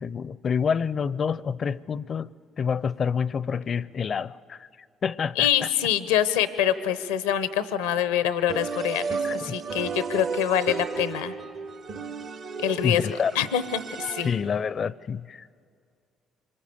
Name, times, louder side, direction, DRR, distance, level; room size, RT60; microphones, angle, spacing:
voice 1, 0.0-2.3 2.6-4.7 5.0-5.7 9.2-9.6 12.8-13.3 14.2-15.5, left 6 dB, 50° left, 0.5 m, -28 dB
voice 2, 5.4-11.3 12.6-14.3, left 10 dB, 85° left, 0.7 m, -25 dB
sound 1, 8.5-14.6, right 5 dB, 55° right, 0.8 m, -33 dB
25.0 x 23.0 x 7.1 m
hypercardioid pair, 55°, 0 cm